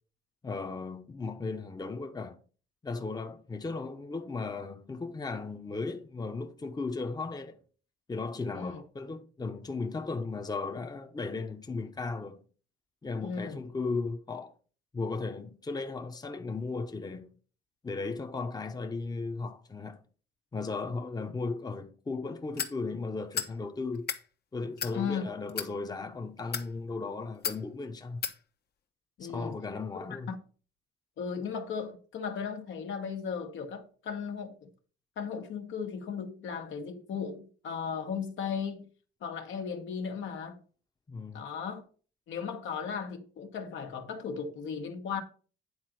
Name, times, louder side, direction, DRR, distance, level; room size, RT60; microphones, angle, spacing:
voice 1, 0.4-2.4 2.8-7.6 8.1-12.4 13.0-14.5 14.9-17.4 17.8-20.0 20.5-24.1 24.5-28.2 29.2-30.3 41.1-41.5, left 3 dB, 20° left, 0.9 m, -36 dB
voice 2, 13.2-13.6 24.9-25.3 29.2-29.5 30.1-30.4 31.2-34.7 35.2-38.9 39.2-40.6 41.3-41.8 42.3-45.2, left 6 dB, 75° left, 1.5 m, -36 dB
sound 1, 22.6-22.8 23.3-23.5 23.9-24.2 24.8-25.0 25.5-25.7 26.4-26.7 27.4-27.6 28.2-28.4, left 7 dB, 55° left, 1.1 m, -33 dB
9.6 x 3.9 x 6.1 m
cardioid pair, 90°, 20 cm